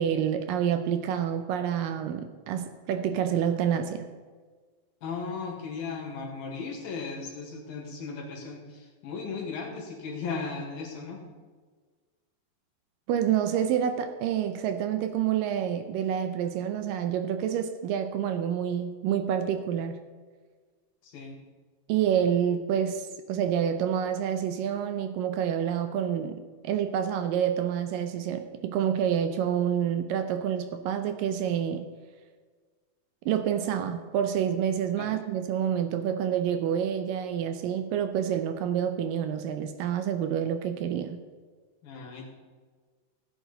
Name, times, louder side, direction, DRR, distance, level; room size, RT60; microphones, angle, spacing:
voice 1, 0.0-4.1 13.1-20.0 21.9-31.9 33.3-41.2, right 9 dB, 80° right, 9 dB, 2.1 m, -28 dB
voice 2, 5.0-11.2 21.0-21.4 35.0-35.1 41.8-42.3, left 4 dB, 75° left, -1 dB, 3.5 m, -36 dB
15.0 x 8.8 x 4.0 m, 1.5 s
omnidirectional pair, 4.3 m